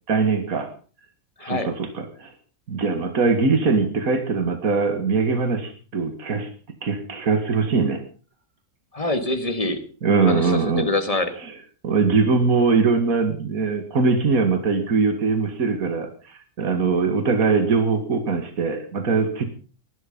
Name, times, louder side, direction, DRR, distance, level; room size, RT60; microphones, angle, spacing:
voice 1, 0.1-0.7 1.4-2.3 2.7-6.5 6.8-8.0 10.0-10.9 11.4-11.6 11.8-19.4, right 4 dB, 70° right, 8 dB, 2.5 m, -22 dB
voice 2, 1.4-1.7 8.9-9.8 10.3-11.3, left 2 dB, 25° left, 8 dB, 2.1 m, -25 dB
19.0 x 12.5 x 5.5 m, 0.39 s
omnidirectional pair, 1.6 m